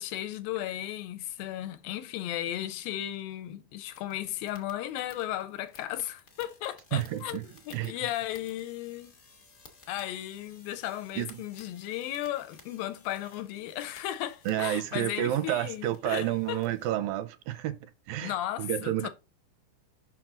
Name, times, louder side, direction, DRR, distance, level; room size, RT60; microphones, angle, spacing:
voice 1, 0.0-7.4 7.7-9.2 9.9-16.6 18.2-19.1, left 13 dB, 90° left, 2.4 m, -35 dB
sound 1, 3.9-16.9, left 4 dB, 55° left, 0.9 m, -57 dB
voice 2, 6.9-7.4 7.7-7.9 11.2-11.4 14.5-17.8 18.1-19.1, right 13 dB, 85° right, 2.3 m, -30 dB
6.0 x 6.0 x 3.8 m
omnidirectional pair, 4.1 m